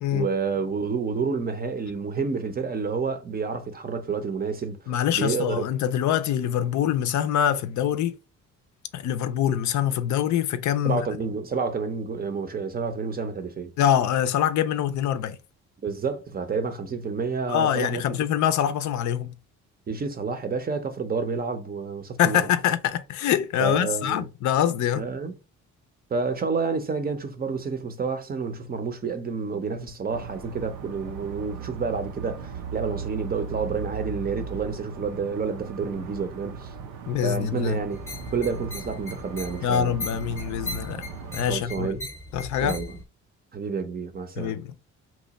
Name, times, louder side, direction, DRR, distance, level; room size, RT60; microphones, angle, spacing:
voice 1, 0.1-4.8 5.1-5.7 10.8-13.7 15.8-18.2 19.9-22.5 23.6-24.3 24.9-25.4 26.1-36.7 37.2-38.0 38.3-39.9 41.5-42.0 42.6-43.0 43.5-44.6, right 5 dB, 30° right, 0.5 m, -29 dB
voice 2, 4.9-8.2 8.9-11.1 13.8-15.4 17.5-19.3 22.2-25.1 37.1-37.8 39.6-41.0 41.3-41.9 42.3-42.8 44.4-44.8, left 10 dB, 70° left, 0.4 m, -24 dB
sound 1, 30.1-41.6, right 5 dB, 85° right, 0.6 m, -38 dB
sound 2, 37.9-43.0, left 2 dB, 10° left, 0.7 m, -38 dB
2.9 x 2.2 x 3.9 m
cardioid pair, 90°, 30 cm